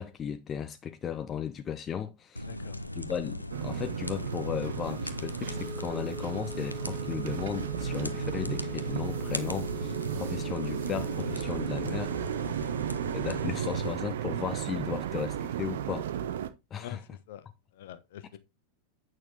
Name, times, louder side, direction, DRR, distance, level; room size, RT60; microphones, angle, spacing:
voice 1, 0.0-2.5 2.9-12.1 13.1-16.1 16.7-17.0, left 8 dB, 25° left, 0.7 m, -35 dB
Ambiance Fire Loop Stereo, 2.4-13.9, left 1 dB, 85° left, 0.7 m, -38 dB
sound 1, 3.5-16.5, right 10 dB, 60° right, 0.9 m, -35 dB
Wind instrument woodwind instrument, 5.4-12.5, left 1 dB, 5° left, 2.9 m, -45 dB
voice 2, 16.8-17.5 17.7-18.4, left 11 dB, 55° left, 1.1 m, -45 dB
8.7 x 6.3 x 3.6 m
figure-of-eight pair, 90°, 0 cm